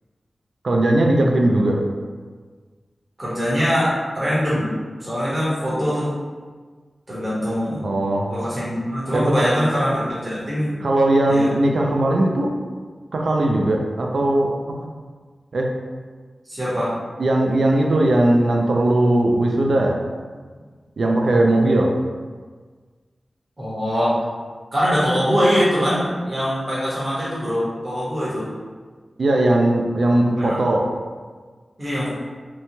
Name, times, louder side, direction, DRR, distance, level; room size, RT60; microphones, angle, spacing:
voice 1, 0.6-1.8 7.8-8.3 9.1-9.5 10.8-12.5 13.1-14.5 15.5-15.7 17.2-20.0 21.0-21.9 29.2-30.9, right 1 dB, 70° right, 0 dB, 0.3 m, -18 dB
voice 2, 3.2-4.7 5.0-6.1 7.1-7.8 8.3-10.8 11.2-11.5 16.5-16.9 23.6-24.2 24.7-28.5 30.4-30.6 31.8-32.1, equal, 30° right, -9 dB, 1.0 m, -22 dB
3.0 x 2.2 x 2.7 m, 1.5 s
wide cardioid pair, 115°, 0 cm